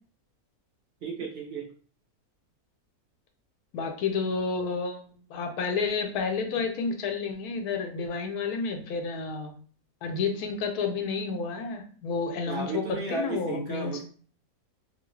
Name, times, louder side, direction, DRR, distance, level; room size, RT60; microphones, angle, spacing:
voice 1, 1.0-1.6 6.6-6.7 12.5-14.0, right 4 dB, 45° right, -1 dB, 0.9 m, -34 dB
voice 2, 3.7-9.5 10.0-14.0, left 4 dB, 85° left, 5 dB, 1.1 m, -30 dB
2.7 x 2.6 x 3.1 m, 0.43 s
omnidirectional pair, 1.6 m